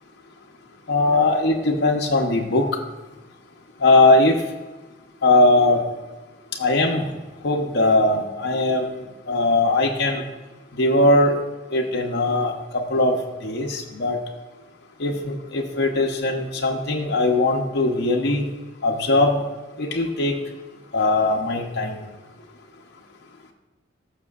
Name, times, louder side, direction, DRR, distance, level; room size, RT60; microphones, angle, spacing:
voice 1, 0.9-2.8 3.8-4.4 5.2-5.9 6.6-7.1 7.4-10.2 10.8-11.4 11.7-14.2 15.0-18.5 18.8-19.4 19.8-20.3 20.9-22.0, left 2 dB, 60° left, 0 dB, 0.9 m, -20 dB
14.5 x 6.7 x 2.4 m, 1.2 s
head